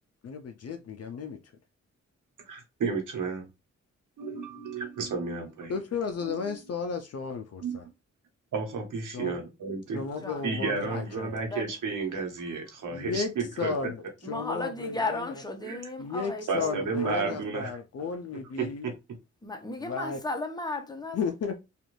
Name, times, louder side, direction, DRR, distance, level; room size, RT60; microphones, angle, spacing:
voice 1, 0.2-1.4 5.7-7.9 9.1-9.4 9.9-11.4 12.9-15.2 16.0-18.9 19.8-20.2 21.1-21.6, left 5 dB, 55° left, 0.5 m, -34 dB
voice 2, 2.5-3.5 4.2-5.8 6.2-6.6 7.6-7.8 8.5-10.0 10.4-13.7 15.6-15.8 16.5-17.7 18.6-18.9, right 4 dB, 85° right, 1.0 m, -32 dB
voice 3, 14.2-17.5 19.4-21.2, left 2 dB, 15° left, 0.7 m, -35 dB
2.5 x 2.5 x 3.0 m
cardioid pair, 85°, 30 cm